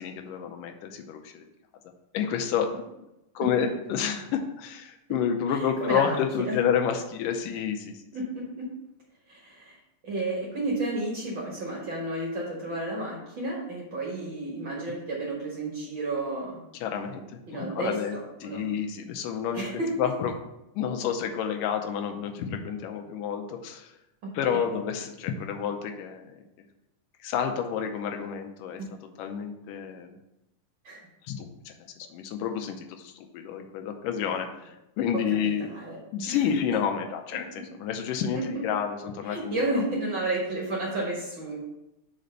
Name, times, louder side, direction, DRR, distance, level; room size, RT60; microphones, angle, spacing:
voice 1, 0.0-1.5 2.1-2.7 3.4-7.9 16.8-19.7 20.0-20.3 20.8-23.9 24.3-26.4 27.2-28.8 29.2-30.2 31.2-31.7 32.1-35.7 36.1-39.7, left 8 dB, 85° left, 4 dB, 2.3 m, -29 dB
voice 2, 5.5-6.2 6.4-6.6 8.1-8.7 9.3-9.8 10.0-16.6 17.5-18.6 19.5-20.1 24.2-24.3 30.8-31.0 35.1-36.0 36.3-36.4 36.7-36.8 38.3-38.6 39.2-41.6, right 2 dB, 50° right, -3 dB, 1.5 m, -32 dB
5.4 x 5.1 x 6.5 m, 0.90 s
omnidirectional pair, 3.8 m